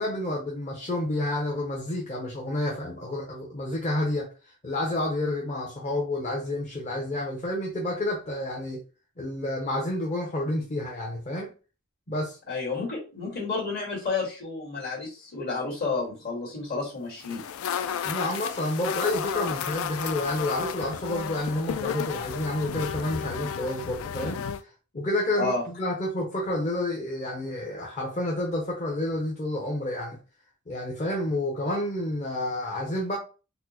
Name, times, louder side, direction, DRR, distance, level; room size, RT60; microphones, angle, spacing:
voice 1, 0.0-4.3 4.6-8.8 9.2-11.5 12.1-12.4 18.0-30.2 30.7-33.2, left 1 dB, 35° left, 0.7 m, -29 dB
voice 2, 12.5-17.5 25.4-25.6, left 4 dB, 55° left, 1.8 m, -31 dB
sound 1, 17.2-24.6, left 8 dB, 90° left, 0.3 m, -32 dB
4.2 x 2.1 x 2.9 m
head